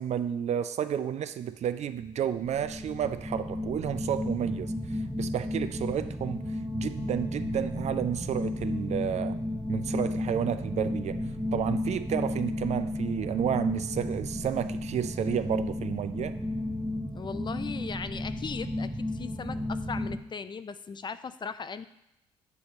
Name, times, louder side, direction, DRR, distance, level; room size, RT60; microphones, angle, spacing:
voice 1, 0.0-6.5 6.7-9.4 9.7-11.2 11.5-16.4, right 9 dB, 55° right, 12 dB, 0.4 m, -31 dB
sound 1, 2.0-20.2, left 1 dB, 10° right, 0.8 m, -33 dB
voice 2, 17.1-21.9, left 5 dB, 35° left, 12 dB, 0.4 m, -38 dB
8.3 x 2.9 x 5.2 m, 0.84 s
supercardioid pair, 60°, 14 cm